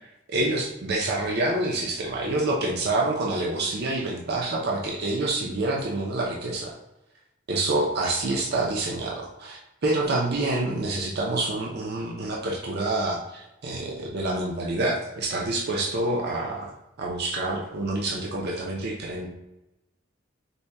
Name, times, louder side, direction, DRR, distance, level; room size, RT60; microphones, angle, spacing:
voice 1, 0.3-6.7 7.5-16.7 17.0-19.3, right 2 dB, 55° right, -1 dB, 0.6 m, -27 dB
4.1 x 2.2 x 3.3 m, 0.93 s
head